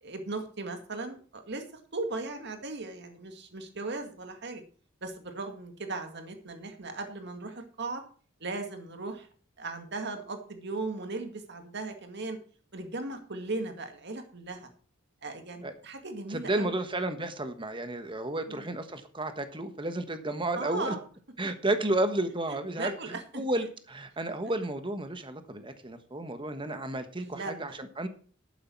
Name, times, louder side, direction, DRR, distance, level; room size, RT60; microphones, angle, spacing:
voice 1, 0.0-1.6 1.9-4.6 5.0-8.0 8.4-9.3 9.6-12.4 12.7-14.7 15.2-16.8 18.5-18.7 20.6-21.0 22.8-23.4 27.2-27.8, right 3 dB, 60° right, 6 dB, 2.1 m, -37 dB
voice 2, 16.3-20.9 21.4-28.1, right 1 dB, 25° right, 9 dB, 1.2 m, -32 dB
11.5 x 9.6 x 4.6 m, 0.42 s
head